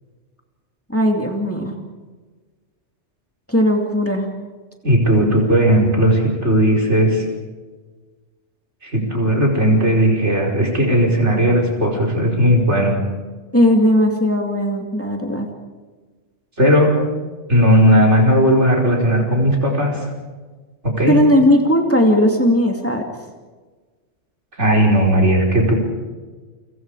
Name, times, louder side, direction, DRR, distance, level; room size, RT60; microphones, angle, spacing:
voice 1, 0.9-1.7 3.5-4.3 13.5-15.5 21.1-23.0, equal, 10° left, 2 dB, 2.5 m, -17 dB
voice 2, 4.8-7.3 8.8-12.9 16.6-16.9 17.5-19.9 20.8-21.2 24.6-25.7, equal, 70° right, -1 dB, 5.2 m, -16 dB
29.5 x 25.0 x 4.9 m, 1.3 s
omnidirectional pair, 1.2 m